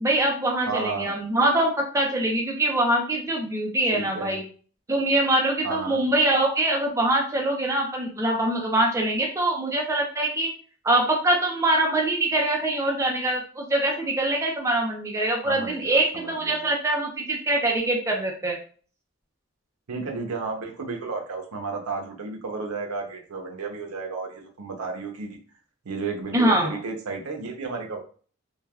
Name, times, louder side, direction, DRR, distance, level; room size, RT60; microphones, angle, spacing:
voice 1, 0.0-4.4 4.9-10.5 10.8-18.6 26.3-26.7, right 1 dB, 15° right, 0 dB, 0.4 m, -23 dB
voice 2, 0.7-1.2 3.9-4.4 5.6-6.0 15.4-16.6 19.9-25.4 25.8-28.0, right 4 dB, 90° right, 3 dB, 0.6 m, -33 dB
3.2 x 2.3 x 2.2 m, 0.42 s
head